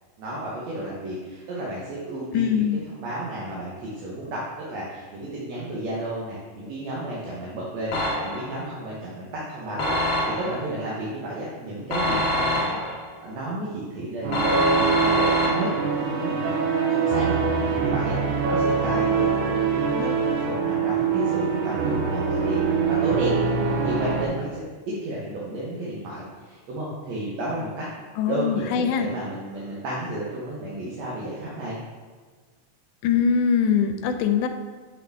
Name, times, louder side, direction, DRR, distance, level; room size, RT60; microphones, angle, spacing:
voice 1, 0.2-2.7 3.0-12.8 13.2-19.5 19.9-23.5 23.8-24.7 25.0-27.9 28.3-31.8, right 1 dB, 65° right, -6 dB, 2.1 m, -32 dB
voice 2, 2.3-2.8 28.2-29.1 33.0-34.5, left 7 dB, 90° left, 7 dB, 2.1 m, -22 dB
sound 1, 7.9-8.6 9.8-10.7 11.9-13.1 14.3-16.0, left 1 dB, 55° left, 1.4 m, -25 dB
sound 2, 14.2-24.3, right 5 dB, 85° right, 2.5 m, -24 dB
7.5 x 4.8 x 3.4 m, 1.5 s
omnidirectional pair, 3.5 m